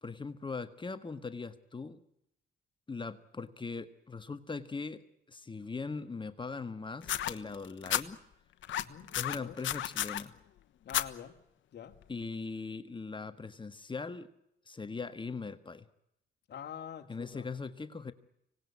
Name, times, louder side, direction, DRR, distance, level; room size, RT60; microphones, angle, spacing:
voice 1, 0.0-2.0 2.9-8.2 9.1-10.3 12.1-14.3 14.7-15.9 17.1-18.1, left 4 dB, 25° left, 1.6 m, -40 dB
sound 1, 7.0-8.0 8.6-10.2 10.9-11.1 12.0-12.1, left 12 dB, 75° left, 1.3 m, -32 dB
voice 2, 8.7-9.1 9.4-9.6 10.8-11.4 11.7-12.0 16.5-17.5, left 9 dB, 55° left, 2.3 m, -45 dB
25.5 x 19.0 x 9.7 m
cardioid pair, 90°, 20 cm